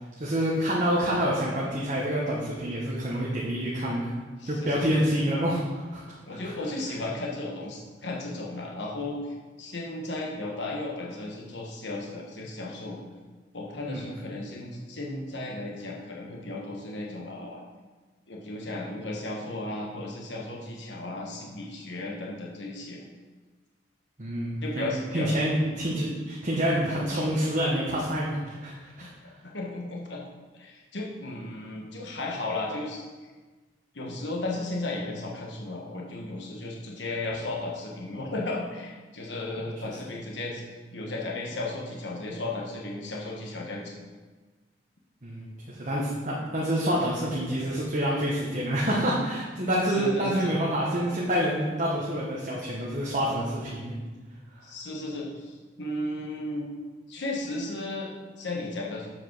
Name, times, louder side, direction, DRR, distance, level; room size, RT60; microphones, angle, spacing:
voice 1, 0.2-4.1 4.4-6.1 6.4-6.5 13.9-14.1 24.2-29.1 45.2-53.9 54.5-54.7, equal, 40° right, -5 dB, 1.2 m, -27 dB
voice 2, 4.4-5.0 6.3-13.0 13.5-17.6 18.3-23.0 24.6-25.3 29.0-29.1 29.5-30.2 30.5-33.1 33.9-40.6 40.9-44.0 49.9-50.5 54.6-56.7 57.1-59.1, left 2 dB, 70° left, -2 dB, 1.2 m, -35 dB
7.7 x 5.0 x 6.0 m, 1.3 s
head